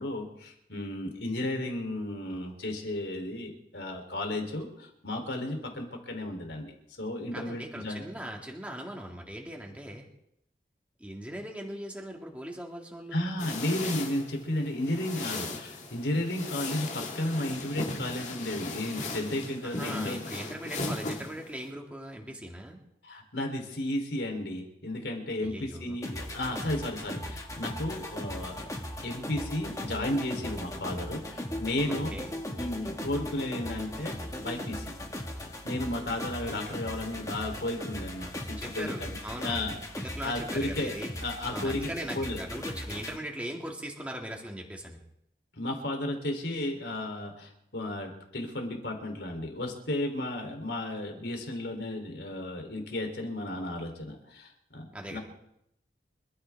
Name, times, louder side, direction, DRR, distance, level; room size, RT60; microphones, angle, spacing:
voice 1, 0.0-6.7 7.0-8.0 13.1-20.3 23.0-28.6 29.0-32.1 32.5-34.9 35.6-40.9 41.2-41.9 42.2-42.4 45.6-55.2, left 1 dB, 80° left, 3 dB, 3.6 m, -33 dB
voice 2, 7.3-10.1 11.0-13.3 19.6-22.8 25.4-26.0 31.9-32.3 38.6-39.6 40.0-41.1 41.5-45.0 54.9-55.2, right 1 dB, 10° right, 0 dB, 2.3 m, -40 dB
sound 1, 13.4-21.7, left 3 dB, 40° left, 1.9 m, -37 dB
sound 2, 26.0-43.2, left 1 dB, 20° left, 1.7 m, -38 dB
26.5 x 14.0 x 3.6 m, 0.78 s
head